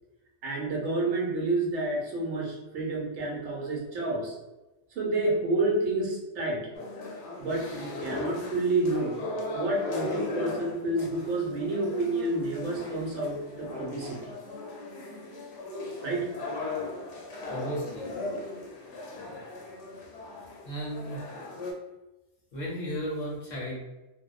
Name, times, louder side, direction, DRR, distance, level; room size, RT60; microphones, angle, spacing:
voice 1, 0.4-4.4 4.9-6.7 7.4-9.2 9.5-14.3 16.0-16.3, right 2 dB, 80° right, -2 dB, 1.0 m, -29 dB
sound 1, 6.7-21.7, left 2 dB, 80° left, 0.9 m, -38 dB
voice 2, 17.5-18.1 20.6-21.3 22.5-23.8, equal, 50° left, -4 dB, 0.6 m, -34 dB
2.6 x 2.1 x 2.3 m, 1.1 s
omnidirectional pair, 1.2 m